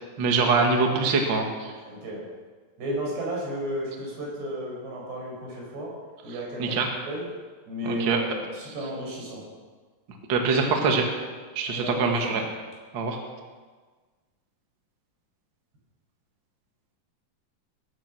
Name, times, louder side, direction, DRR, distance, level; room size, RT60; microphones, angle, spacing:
voice 1, 0.2-1.7 6.6-6.9 7.8-8.2 10.3-11.1 11.5-12.4 12.9-13.2, right 4 dB, 40° right, 2 dB, 1.7 m, -23 dB
voice 2, 1.9-2.2 2.8-5.9 6.2-6.8 7.1-7.3 7.7-9.4 11.7-12.4, right 1 dB, 90° right, -2 dB, 7.3 m, -33 dB
21.5 x 11.0 x 6.2 m, 1.4 s
omnidirectional pair, 4.7 m